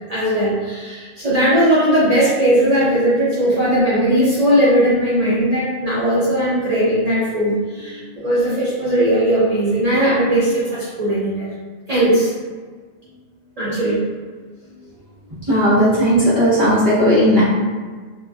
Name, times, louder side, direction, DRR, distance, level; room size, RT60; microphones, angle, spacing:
voice 1, 0.1-11.5 11.9-12.3 13.6-14.1, right 1 dB, 60° right, -9 dB, 0.4 m, -18 dB
voice 2, 15.5-17.4, equal, 30° right, -13 dB, 1.3 m, -15 dB
2.7 x 2.4 x 2.4 m, 1.5 s
omnidirectional pair, 1.3 m